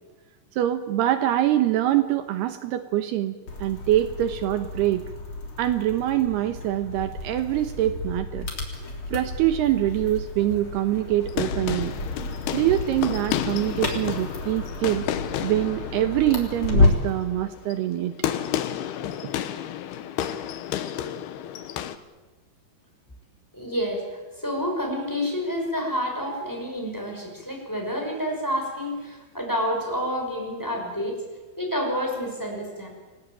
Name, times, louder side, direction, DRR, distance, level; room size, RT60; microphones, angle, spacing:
voice 1, 0.6-5.1 5.6-8.5 9.1-11.9 12.5-15.1 15.4-18.1 19.2-19.3, right 13 dB, 75° right, 9 dB, 3.0 m, -24 dB
sound 1, 3.5-17.2, left 3 dB, 30° left, 4.1 m, -30 dB
sound 2, 11.1-22.0, left 11 dB, 75° left, 3.0 m, -31 dB
voice 2, 23.5-31.2 31.6-32.9, equal, 5° left, 2 dB, 5.8 m, -29 dB
28.5 x 19.5 x 9.1 m, 1.3 s
omnidirectional pair, 4.8 m